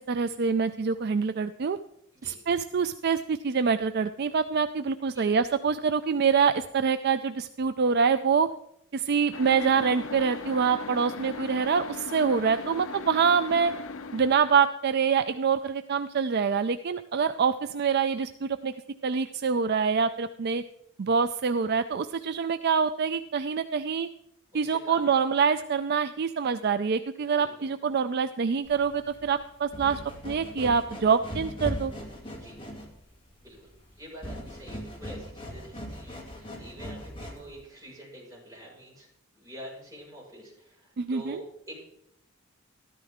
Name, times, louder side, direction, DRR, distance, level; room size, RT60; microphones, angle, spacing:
voice 1, 0.1-1.8 2.2-8.5 8.9-13.7 14.1-18.7 19.0-20.6 21.0-24.1 24.5-31.9 41.0-41.4, right 6 dB, 50° right, 11 dB, 0.4 m, -25 dB
sound 1, 9.3-14.7, left 4 dB, 70° left, 0.7 m, -38 dB
voice 2, 24.5-25.1 27.4-27.7 32.3-32.6 33.4-33.6 34.0-39.1 39.3-41.8, right 1 dB, 15° right, -6 dB, 5.7 m, -46 dB
sound 2, 28.7-37.6, equal, 25° left, 2.5 m, -40 dB
13.5 x 13.0 x 3.6 m, 0.75 s
head